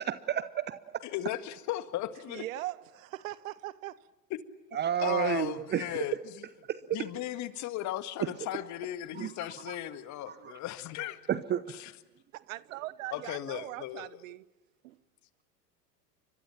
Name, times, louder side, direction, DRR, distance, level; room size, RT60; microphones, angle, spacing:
voice 1, 0.0-1.0 4.7-6.0 6.7-7.1 8.2-8.3 9.1-9.3 9.7-9.8 10.3-10.4 11.3-11.6, right 10 dB, 20° right, 0.8 m, -31 dB
voice 2, 1.0-2.4 5.0-6.5 6.9-11.2 11.7-11.9 13.1-14.1, left 13 dB, 35° left, 1.8 m, -36 dB
voice 3, 2.3-4.1 12.3-14.4 14.8-15.0, right 17 dB, 55° right, 1.0 m, -40 dB
30.0 x 25.0 x 5.9 m
figure-of-eight pair, 90°, 49 cm